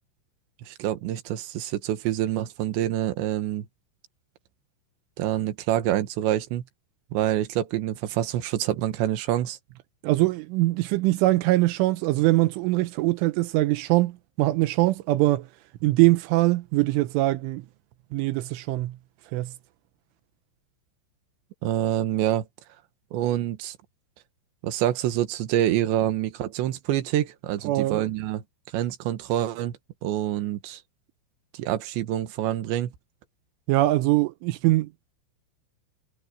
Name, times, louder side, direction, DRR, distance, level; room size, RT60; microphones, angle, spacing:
voice 1, 0.6-3.7 5.2-6.6 7.1-9.6 21.6-22.5 23.1-23.8 24.6-28.4 28.7-29.7 30.0-30.8 31.5-32.9, right 12 dB, 70° right, 3.6 m, -26 dB
voice 2, 10.0-15.5 15.8-17.6 18.1-19.0 19.3-19.5 27.6-28.0 33.7-34.9, right 18 dB, 85° right, 3.4 m, -22 dB
omnidirectional pair, 5.7 m